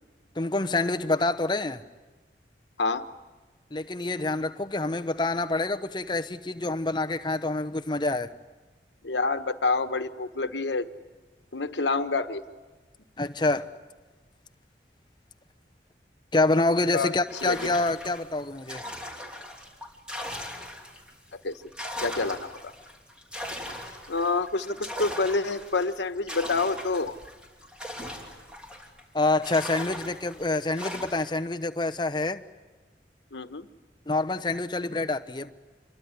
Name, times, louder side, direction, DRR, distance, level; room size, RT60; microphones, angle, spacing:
voice 1, 0.4-1.8 3.7-8.3 13.2-13.7 16.3-18.8 29.1-32.4 34.1-35.5, left 2 dB, 25° left, 0.9 m, -27 dB
voice 2, 9.0-10.8 11.5-12.4 16.9-17.1 17.4-17.7 21.3-21.6 22.0-22.7 24.1-27.1 33.3-33.7, left 3 dB, 85° left, 1.3 m, -27 dB
sound 1, 17.3-21.1 21.5-29.0 29.4-31.4, left 1 dB, 5° right, 3.1 m, -39 dB
27.0 x 22.5 x 9.7 m
head